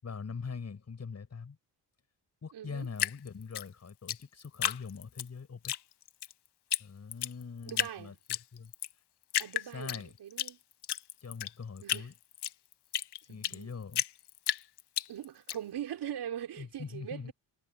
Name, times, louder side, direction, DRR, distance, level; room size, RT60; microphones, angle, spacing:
voice 1, 0.0-1.6 2.4-5.7 6.8-8.7 9.6-10.2 11.2-12.1 13.2-14.0 16.5-17.3, left 5 dB, 40° left, 6.7 m, -43 dB
voice 2, 2.5-2.9 7.7-8.1 9.4-10.6 11.8-12.1 13.3-13.8 15.1-17.3, right 10 dB, 85° right, 4.6 m, -41 dB
Drip, 3.0-5.3 5.6-6.3 6.7-6.8 7.1-7.9 8.3-8.9 9.3-10.5 10.8-13.6 13.9-15.6, left 12 dB, 85° left, 1.1 m, -32 dB
cardioid pair, 120°, 39 cm